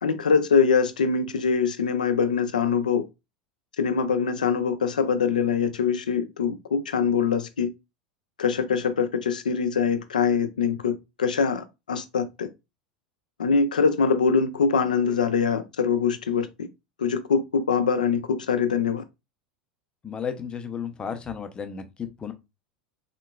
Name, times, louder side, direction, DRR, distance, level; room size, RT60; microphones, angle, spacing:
voice 1, 0.0-3.0 3.8-7.7 8.4-12.5 13.4-16.7 17.0-19.0, left 6 dB, 70° left, 0.5 m, -23 dB
voice 2, 20.0-22.3, left 7 dB, 20° left, 0.6 m, -33 dB
3.7 x 2.9 x 2.2 m
figure-of-eight pair, 80°, 4 cm